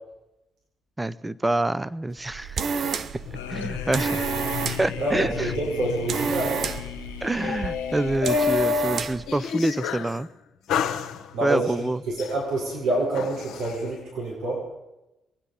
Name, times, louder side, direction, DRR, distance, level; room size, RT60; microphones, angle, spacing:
voice 1, 1.0-2.6 3.5-4.3 4.8-5.5 7.2-10.3 11.4-12.0, right 2 dB, 15° right, 17 dB, 0.7 m, -26 dB
sound 1, 2.2-9.3, right 6 dB, 55° right, 0.9 m, -31 dB
sound 2, 3.2-10.2 10.7-11.6 12.2-13.8, left 7 dB, 65° left, 1.3 m, -31 dB
sound 3, 3.3-8.6, left 7 dB, 90° left, 1.1 m, -40 dB
voice 2, 5.0-6.7 11.3-14.6, right 2 dB, 70° right, -5 dB, 6.6 m, -27 dB
23.0 x 10.0 x 5.4 m, 0.94 s
hypercardioid pair, 50°, 0 cm